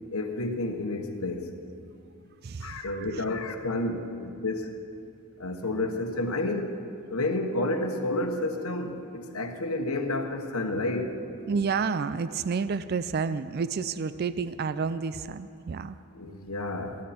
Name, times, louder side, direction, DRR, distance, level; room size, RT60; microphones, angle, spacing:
voice 1, 0.1-1.5 2.6-4.7 5.4-11.2 16.1-17.1, left 2 dB, 80° left, 4 dB, 1.3 m, -30 dB
voice 2, 2.4-3.2 11.5-16.0, right 5 dB, 45° right, 14 dB, 0.4 m, -30 dB
23.5 x 11.5 x 4.4 m, 2.5 s
head